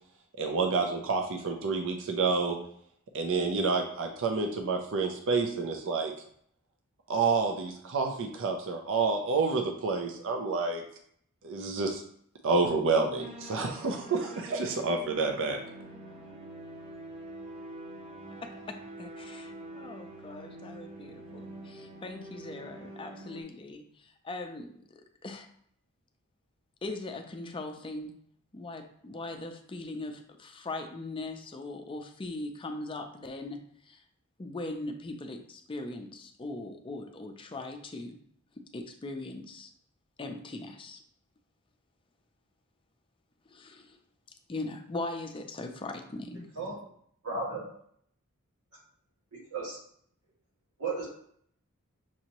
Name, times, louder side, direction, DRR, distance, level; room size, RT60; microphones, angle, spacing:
voice 1, 0.4-2.6 3.1-6.1 7.1-10.8 11.4-12.0 12.4-15.6, right 4 dB, 60° right, 3 dB, 0.5 m, -29 dB
sound 1, 13.2-23.4, right 2 dB, 30° right, 0.7 m, -45 dB
voice 2, 18.4-24.7 25.2-25.5 26.8-28.1 28.5-33.6 33.9-34.0 34.4-38.2 38.7-39.7 40.2-41.0 43.5-44.0 44.5-46.5, left 2 dB, 25° left, 5 dB, 0.4 m, -40 dB
voice 3, 47.2-47.7 49.5-49.8 50.8-51.1, right 3 dB, 90° right, -5 dB, 1.9 m, -33 dB
6.0 x 2.7 x 2.9 m, 0.65 s
head